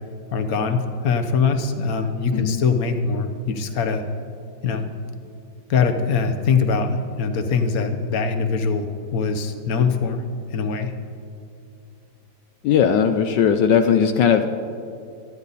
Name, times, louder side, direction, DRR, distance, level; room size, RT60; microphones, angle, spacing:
voice 1, 0.3-4.0 4.6-4.8 5.7-10.2 10.5-10.9, left 5 dB, 55° left, 6 dB, 1.4 m, -22 dB
voice 2, 12.6-14.4, left 7 dB, 75° left, 7 dB, 1.3 m, -18 dB
27.5 x 10.0 x 4.1 m, 2.5 s
omnidirectional pair, 2.0 m